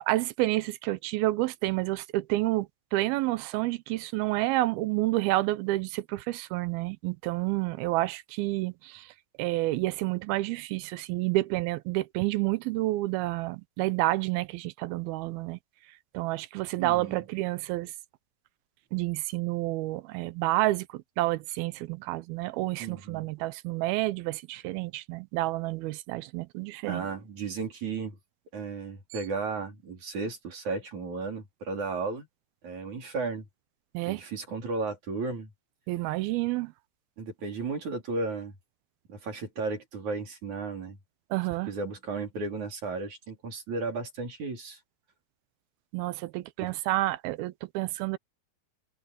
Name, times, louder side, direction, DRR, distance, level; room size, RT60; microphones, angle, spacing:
voice 1, 0.0-9.1 9.4-15.6 16.1-17.9 18.9-27.1 33.9-34.2 35.9-36.7 41.3-41.7 45.9-48.2, right 18 dB, 80° right, 2.5 m, -29 dB
voice 2, 16.8-17.2 22.8-23.3 26.8-28.2 28.5-32.3 32.6-33.5 34.1-35.5 37.2-38.5 39.1-41.0 41.7-44.8 46.6-46.7, right 4 dB, 50° right, 5.3 m, -34 dB
omnidirectional pair, 4.5 m